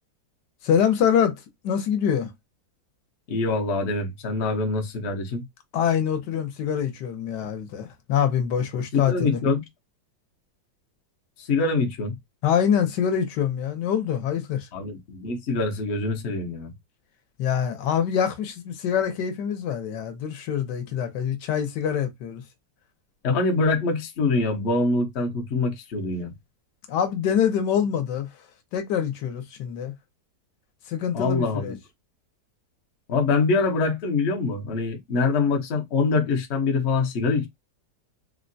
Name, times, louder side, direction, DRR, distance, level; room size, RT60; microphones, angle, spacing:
voice 1, 0.6-2.3 5.7-9.4 12.4-14.7 17.4-22.4 26.9-28.3 28.7-29.9 30.9-31.8, left 8 dB, 75° left, 1.3 m, -25 dB
voice 2, 3.3-5.4 9.1-9.6 11.4-12.2 14.7-16.7 23.2-26.3 31.1-31.8 33.1-37.5, left 3 dB, 55° left, 0.7 m, -24 dB
3.6 x 2.1 x 2.5 m
omnidirectional pair, 2.0 m